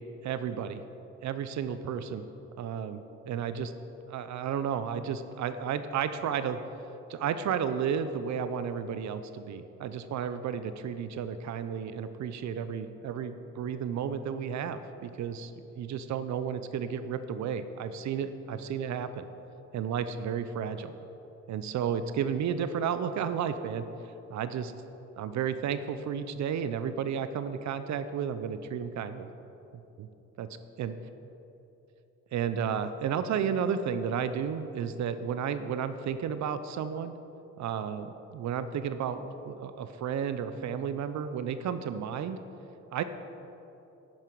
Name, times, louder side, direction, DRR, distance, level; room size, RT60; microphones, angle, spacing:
voice 1, 0.2-0.8 1.2-2.3 2.6-3.7 4.1-6.6 7.1-19.3 19.7-20.9 21.5-23.8 24.3-24.7 25.2-29.3 30.0-30.1 30.4-30.5 30.8-30.9 32.3-37.1 37.6-42.4 42.9-43.0, right 7 dB, 65° right, 11 dB, 0.6 m, -32 dB
11.5 x 8.9 x 4.7 m, 3.0 s
cardioid pair, 90°, 30 cm